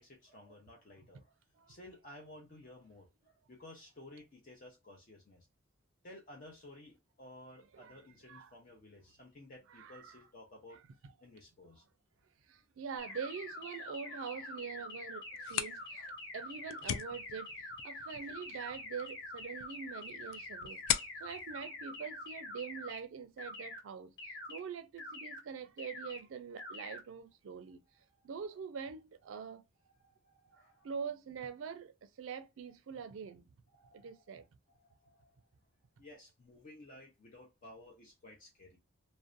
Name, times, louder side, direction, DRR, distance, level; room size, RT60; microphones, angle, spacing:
voice 1, 0.0-1.3 1.7-5.5 6.0-10.8 11.2-11.8 30.0-30.9 33.7-34.3 34.8-35.4 36.0-38.8, left 1 dB, 45° left, 0.6 m, -55 dB
voice 2, 9.7-10.2 10.7-11.1 12.5-20.8 21.2-27.8 28.2-29.6 30.5-33.5 33.9-34.5, right 6 dB, 75° right, 0.4 m, -44 dB
sound 1, 13.0-23.0 23.4-23.8 24.2-24.6 25.0-25.4 25.8-26.2 26.6-27.0, left 2 dB, 60° left, 1.1 m, -45 dB
sound 2, 15.2-22.8, left 10 dB, 85° left, 0.3 m, -41 dB
2.6 x 2.1 x 2.4 m
head